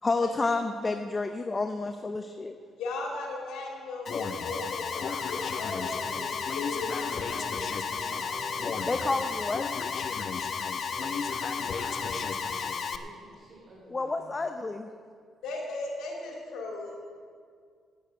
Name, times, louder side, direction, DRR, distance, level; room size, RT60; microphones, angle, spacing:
voice 1, 0.0-2.6 8.9-9.9 13.9-14.9, left 3 dB, 25° left, 7 dB, 0.7 m, -30 dB
voice 2, 2.8-5.9 6.5-7.4 15.4-17.0, left 3 dB, 85° left, 0 dB, 3.0 m, -37 dB
Alarm, 4.1-13.0, left 6 dB, 50° left, 0.8 m, -32 dB
voice 3, 5.0-8.9 11.3-14.4, right 1 dB, 50° right, -2 dB, 2.9 m, -49 dB
sound 1, 5.6-10.0 10.8-12.6, right 2 dB, 35° right, 1.2 m, -49 dB
10.0 x 9.4 x 8.8 m, 2.1 s
cardioid pair, 90°, 0 cm